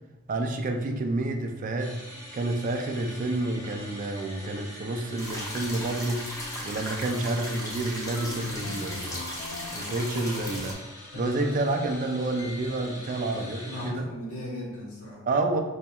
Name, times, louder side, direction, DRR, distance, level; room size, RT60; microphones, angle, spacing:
voice 1, 0.3-1.9 2.3-6.2 6.6-9.2 9.7-10.8 11.1-14.0 15.2-15.6, right 2 dB, 35° right, 4 dB, 0.3 m, -29 dB
sound 1, 1.8-13.9, left 1 dB, 35° left, 1.1 m, -44 dB
sound 2, 5.2-10.7, left 1 dB, 15° left, 0.7 m, -37 dB
sound 3, 8.1-10.8 11.1-13.0, left 4 dB, 60° left, 0.3 m, -40 dB
voice 2, 13.1-15.3, equal, 75° left, -6 dB, 1.4 m, -38 dB
5.1 x 2.7 x 2.3 m, 1.1 s
head